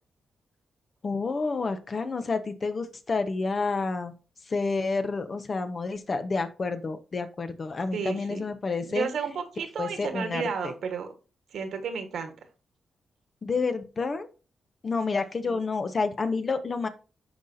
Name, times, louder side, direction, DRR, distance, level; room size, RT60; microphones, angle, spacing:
voice 1, 1.0-4.1 4.5-9.1 9.8-10.7 13.4-14.3 14.8-16.9, left 4 dB, 45° left, 8 dB, 1.1 m, -29 dB
voice 2, 7.9-8.4 8.9-11.1 11.5-12.3 15.4-15.6, right 6 dB, 80° right, 7 dB, 1.5 m, -32 dB
11.5 x 4.2 x 2.8 m, 0.33 s
cardioid pair, 70°, 0 cm